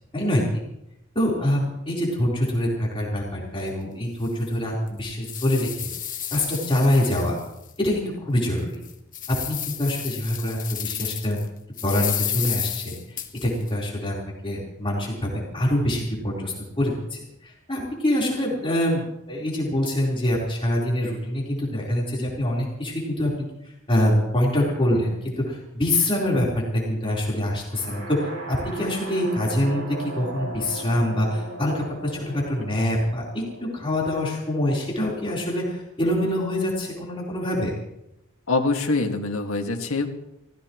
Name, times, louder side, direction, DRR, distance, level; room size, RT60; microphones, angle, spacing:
voice 1, 0.1-0.6 1.1-5.9 6.3-7.4 7.8-8.8 9.3-11.4 11.8-26.5 26.7-33.4 33.7-37.7, left 1 dB, 25° left, -4 dB, 4.3 m, -25 dB
sound 1, 3.6-3.7 4.2-4.3 4.9-7.7 8.1-8.2 8.7-11.4 11.8-13.7, left 10 dB, 40° left, 1.4 m, -32 dB
sound 2, 27.7-35.6, right 2 dB, 85° right, 5.5 m, -37 dB
voice 2, 38.5-40.1, left 3 dB, 90° left, 3 dB, 2.1 m, -24 dB
24.0 x 17.0 x 3.2 m, 0.85 s
head